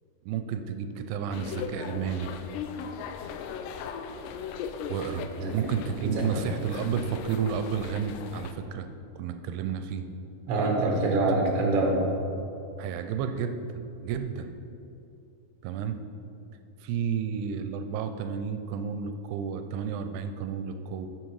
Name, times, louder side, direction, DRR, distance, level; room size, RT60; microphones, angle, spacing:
voice 1, 0.3-2.3 4.9-8.9 9.2-10.1 11.1-11.2 12.8-14.6 15.6-16.0 16.8-21.1, right 7 dB, 85° right, 8 dB, 2.5 m, -32 dB
sound 1, 1.3-8.5, left 6 dB, 85° left, 2.8 m, -38 dB
voice 2, 6.0-6.5 10.5-12.0, right 2 dB, 65° right, 0 dB, 1.4 m, -25 dB
10.0 x 7.7 x 4.7 m, 2.8 s
omnidirectional pair, 4.8 m